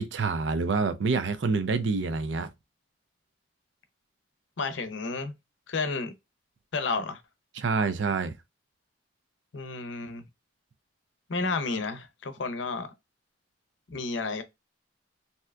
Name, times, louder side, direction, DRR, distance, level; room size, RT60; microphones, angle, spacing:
voice 1, 0.0-2.5 7.5-8.3, right 4 dB, 75° right, 0.5 m, -27 dB
voice 2, 4.6-5.3 5.7-6.1 6.7-7.2 9.5-10.2 11.3-12.9 13.9-14.4, left 3 dB, 80° left, 0.6 m, -31 dB
3.3 x 2.7 x 2.3 m
head